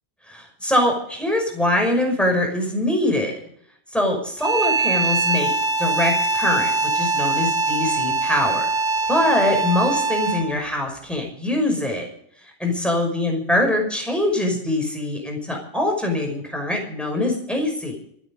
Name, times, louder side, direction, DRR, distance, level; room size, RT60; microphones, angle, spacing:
voice 1, 0.3-3.4 3.9-5.5 5.8-8.7 9.1-12.1 12.6-18.0, left 1 dB, ahead, 2 dB, 5.7 m, -23 dB
sound 1, 4.4-10.6, right 3 dB, 55° right, 1.7 m, -22 dB
27.0 x 9.0 x 5.2 m, 0.68 s
omnidirectional pair, 1.1 m